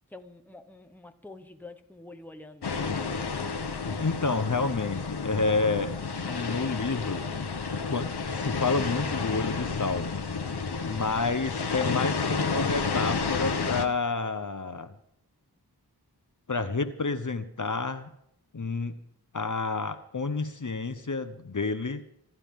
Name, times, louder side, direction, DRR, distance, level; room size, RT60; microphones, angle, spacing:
voice 1, 0.1-2.7 4.3-4.5, left 2 dB, 5° left, 7 dB, 1.0 m, -47 dB
sound 1, 2.6-13.8, left 4 dB, 75° left, 1.1 m, -31 dB
voice 2, 3.9-5.9 6.2-7.2 7.9-10.2 10.8-15.0 16.5-18.1 18.5-19.0 19.3-22.0, left 4 dB, 50° left, 10 dB, 1.0 m, -29 dB
25.5 x 12.5 x 3.7 m, 0.74 s
wide cardioid pair, 55°, 40 cm